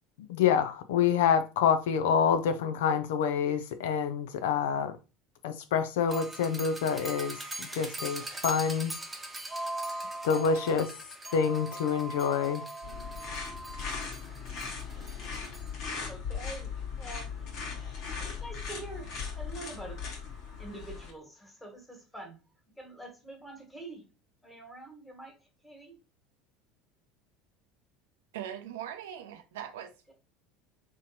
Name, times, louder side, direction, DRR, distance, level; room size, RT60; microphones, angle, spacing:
voice 1, 0.2-5.0 5.4-9.0 10.2-10.9 11.3-12.7, left 7 dB, 75° left, 0.4 m, -27 dB
sound 1, 6.1-15.7, right 2 dB, 15° right, 0.9 m, -40 dB
sound 2, 12.8-21.1, left 5 dB, 60° left, 1.2 m, -38 dB
voice 2, 14.9-15.3 15.6-15.8 16.1-16.7 17.0-20.0 20.6-22.4 22.8-24.1 24.4-25.4 25.6-26.0 30.1-30.2, right 2 dB, 5° left, 1.5 m, -46 dB
voice 3, 28.3-29.9, right 10 dB, 75° right, 0.5 m, -40 dB
3.5 x 2.9 x 2.7 m
hypercardioid pair, 80°, 0 cm